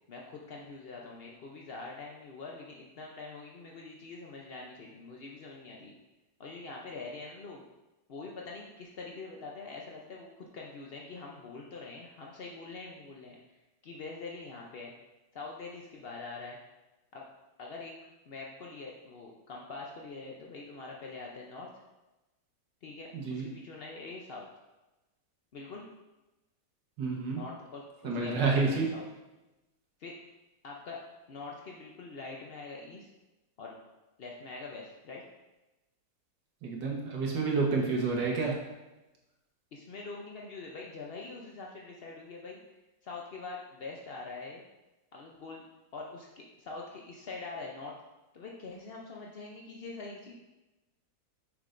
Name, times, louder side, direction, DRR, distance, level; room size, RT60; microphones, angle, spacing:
voice 1, 0.1-5.9 6.4-7.6 8.1-13.4 13.8-14.9 15.3-16.6 17.1-17.2 17.6-17.9 18.3-21.7 22.8-24.5 25.5-25.9 27.3-29.1 30.0-30.2 30.6-31.0 31.3-33.1 33.6-33.8 34.2-35.3 39.7-42.6 43.0-44.6 45.1-45.6 45.9-47.9 48.3-50.3, left 3 dB, 80° left, -2 dB, 0.5 m, -44 dB
voice 2, 23.1-23.5 27.0-27.4 28.0-28.9 36.6-38.6, right 4 dB, 70° right, -1 dB, 1.8 m, -29 dB
6.6 x 6.3 x 2.6 m, 1.0 s
omnidirectional pair, 2.0 m